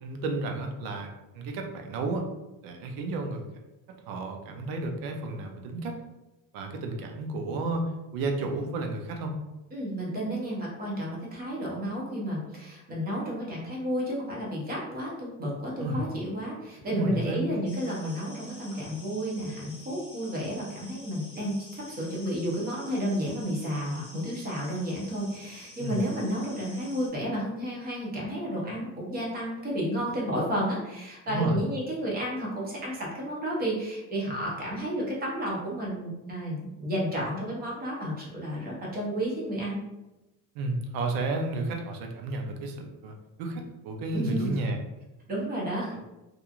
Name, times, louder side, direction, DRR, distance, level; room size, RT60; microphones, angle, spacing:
voice 1, 0.0-1.1 1.3-2.2 2.6-3.4 4.1-6.0 6.5-7.8 8.1-9.3 15.8-16.0 16.9-17.5 25.8-26.0 31.3-31.6 40.6-44.8 45.9-46.0, right 2 dB, 80° right, 3 dB, 0.6 m, -32 dB
voice 2, 9.7-39.8 44.1-44.5 45.3-45.9, equal, 30° right, -4 dB, 0.7 m, -32 dB
sound 1, 17.6-27.1, left 1 dB, 15° left, 0.9 m, -49 dB
2.9 x 2.4 x 2.4 m, 1.0 s
cardioid pair, 165°, 34 cm